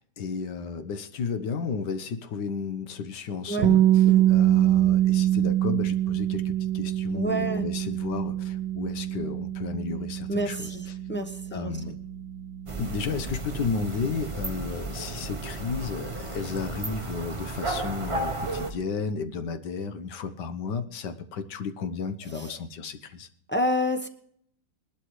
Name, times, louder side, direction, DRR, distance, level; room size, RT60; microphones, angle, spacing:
voice 1, 0.0-10.7 11.5-12.0 12.8-23.3, left 5 dB, 70° left, 10 dB, 1.6 m, -33 dB
sound 1, 3.6-15.5, right 12 dB, 85° right, 1.4 m, -25 dB
voice 2, 7.1-7.7 10.3-11.7 22.3-22.5 23.5-24.1, equal, 10° left, 5 dB, 0.5 m, -29 dB
sound 2, 12.7-18.7, right 2 dB, 25° right, 0.7 m, -34 dB
21.0 x 12.0 x 3.2 m, 0.66 s
omnidirectional pair, 2.0 m